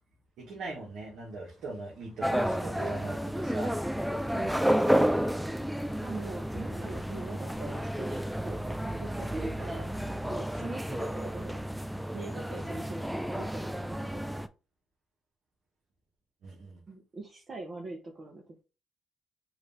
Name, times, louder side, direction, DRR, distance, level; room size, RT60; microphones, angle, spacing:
voice 1, 0.4-4.4 16.4-16.8, right 2 dB, 75° right, 1.6 m, -40 dB
sound 1, 2.2-14.5, equal, ahead, 0.4 m, -31 dB
voice 2, 4.3-5.2 6.0-9.9 10.3-11.6 12.1-14.2 16.9-18.4, right 2 dB, 40° right, 0.9 m, -42 dB
4.8 x 2.7 x 3.4 m
cardioid pair, 90°, 0 cm